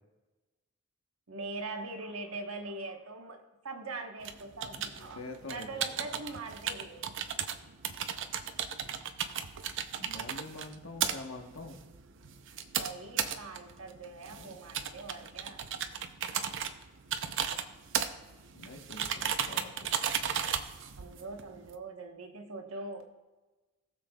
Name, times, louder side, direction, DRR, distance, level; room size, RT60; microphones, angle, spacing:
voice 1, 1.3-5.2 5.5-7.1 12.7-15.6 21.0-23.0, right 3 dB, 90° right, 4 dB, 1.2 m, -42 dB
sound 1, 4.2-21.8, right 8 dB, 60° right, 0.6 m, -36 dB
voice 2, 4.7-6.2 10.0-11.8 14.3-14.6 18.5-19.9, left 2 dB, 70° left, 3 dB, 1.2 m, -46 dB
19.0 x 7.1 x 2.3 m, 1.2 s
head